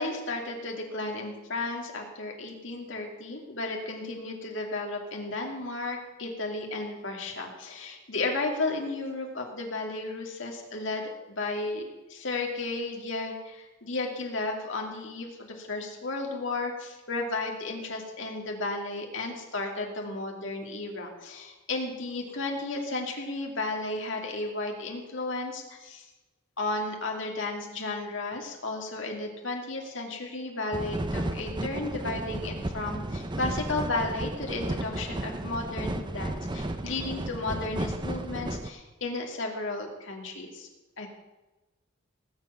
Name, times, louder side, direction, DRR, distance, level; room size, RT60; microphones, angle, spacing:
voice 1, 0.0-26.1 26.6-40.7 41.0-41.1, left 2 dB, 65° left, 1 dB, 2.7 m, -33 dB
sound 1, 30.7-38.7, right 1 dB, 20° right, 0.7 m, -33 dB
19.0 x 7.7 x 7.0 m, 1.1 s
head